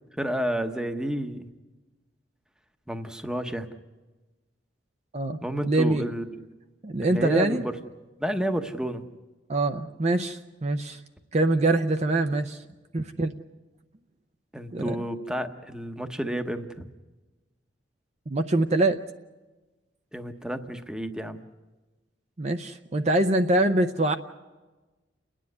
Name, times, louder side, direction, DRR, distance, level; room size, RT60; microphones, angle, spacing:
voice 1, 0.2-1.5 2.9-3.7 5.4-6.4 7.0-7.8 8.2-9.0 14.5-16.9 20.1-21.4, right 1 dB, 5° right, 7 dB, 0.9 m, -30 dB
voice 2, 5.6-6.0 6.8-7.6 9.5-11.0 11.3-12.6 12.9-13.3 14.7-14.9 18.3-19.0 22.4-24.1, right 2 dB, 35° right, 7 dB, 0.6 m, -24 dB
30.0 x 10.0 x 9.5 m, 1.2 s
head